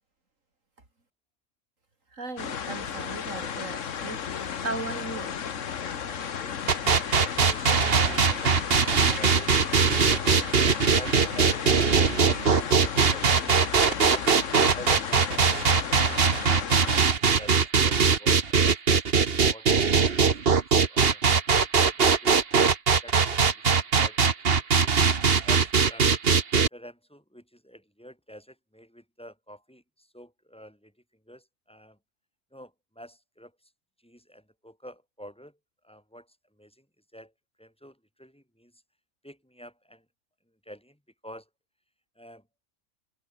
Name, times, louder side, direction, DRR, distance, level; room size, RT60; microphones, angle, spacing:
voice 1, 2.1-5.3, right 3 dB, 75° right, 4.5 m, -37 dB
sound 1, 2.4-17.0, left 7 dB, 70° left, 1.5 m, -34 dB
voice 2, 5.8-6.6 7.1-10.4 10.9-14.3 14.7-19.2 19.5-19.7 20.1-21.2 21.8-22.8 23.0-25.0 25.4-26.1 26.7-32.0 32.5-33.7 34.0-35.6 35.8-36.9 37.1-37.3 37.6-38.8 39.2-40.1 40.5-41.5 42.1-42.5, equal, 5° left, 6.4 m, -48 dB
sound 2, 6.7-26.7, right 5 dB, 50° right, 1.6 m, -21 dB
omnidirectional pair, 1.3 m